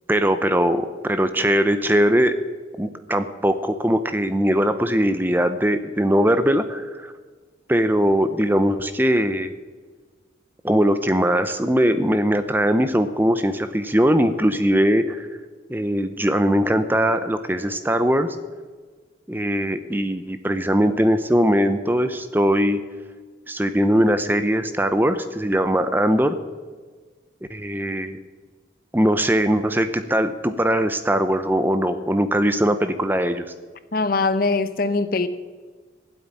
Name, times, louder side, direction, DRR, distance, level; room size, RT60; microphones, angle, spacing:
voice 1, 0.1-2.4 2.8-7.1 7.7-9.5 10.6-15.3 15.7-18.3 19.3-22.8 23.5-26.4 27.5-28.2 28.9-33.5, equal, 10° right, 0.6 m, -20 dB
voice 2, 33.9-35.3, left 3 dB, 50° left, 0.8 m, -22 dB
15.5 x 8.3 x 9.9 m
head